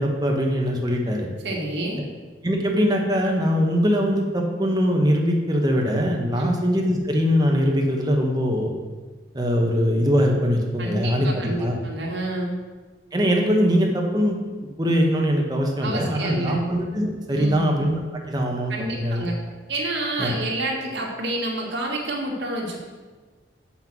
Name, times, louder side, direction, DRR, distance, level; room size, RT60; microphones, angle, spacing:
voice 1, 0.0-1.3 2.4-8.7 9.3-11.8 13.1-14.4 14.8-18.0 18.3-19.2 20.2-20.3, equal, 20° right, 0 dB, 1.1 m, -22 dB
voice 2, 1.4-2.0 6.4-6.6 10.8-12.5 15.8-16.6 17.3-17.7 18.7-19.4 19.7-22.8, right 1 dB, 70° right, -1 dB, 1.8 m, -28 dB
7.6 x 5.7 x 6.0 m, 1.3 s
head